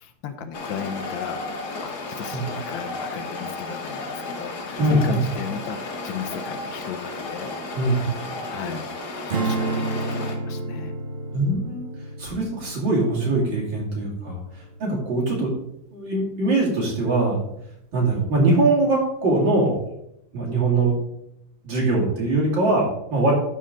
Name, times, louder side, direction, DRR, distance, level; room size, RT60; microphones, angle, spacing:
voice 1, 0.0-7.5 8.5-10.9 14.2-14.3, left 7 dB, 85° left, 8 dB, 1.6 m, -36 dB
sound 1, 0.5-10.4, left 3 dB, 60° left, 1.6 m, -33 dB
voice 2, 4.8-5.2 7.7-8.0 11.3-11.9 12.2-15.5 15.9-17.4 17.9-19.8 20.3-20.9 21.6-23.3, right 2 dB, 75° right, -4 dB, 3.2 m, -22 dB
Strum, 9.3-15.7, right 3 dB, 50° right, 0.7 m, -31 dB
12.0 x 4.2 x 3.8 m, 0.79 s
omnidirectional pair, 2.0 m